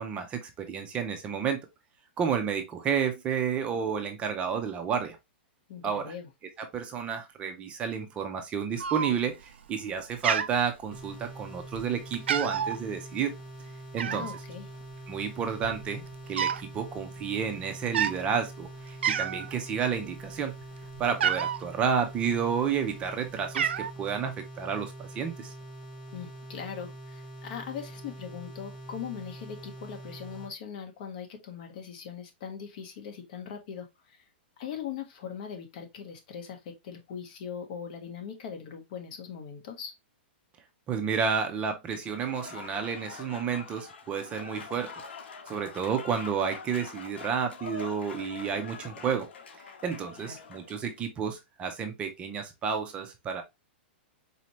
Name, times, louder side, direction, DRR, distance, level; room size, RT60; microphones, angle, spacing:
voice 1, 0.0-1.6 2.2-5.2 5.8-6.1 6.6-13.3 13.9-14.3 15.1-16.0 16.3-20.5 21.0-25.5 40.9-44.9 45.5-49.3 49.8-53.4, right 6 dB, 20° right, 0.5 m, -31 dB
voice 2, 5.7-6.3 14.1-14.7 26.1-34.2 34.6-39.9 50.2-50.5, left 7 dB, 45° left, 1.0 m, -40 dB
Cat, 8.8-9.4 9.8-10.0 10.2-11.3 11.7-11.9 12.1-12.8 14.0-14.4 15.2-15.3 15.5-16.7 17.0-17.2 17.8-18.2 18.7-18.8 19.0-19.5 19.9-21.6 22.4-23.0 23.3-23.9, right 8 dB, 90° right, 0.5 m, -29 dB
sound 1, 10.9-30.5, right 1 dB, 10° left, 1.1 m, -44 dB
Applause / Crowd, 42.1-50.9, left 5 dB, 85° left, 0.7 m, -45 dB
4.2 x 2.7 x 2.9 m
hypercardioid pair, 155°, 6 cm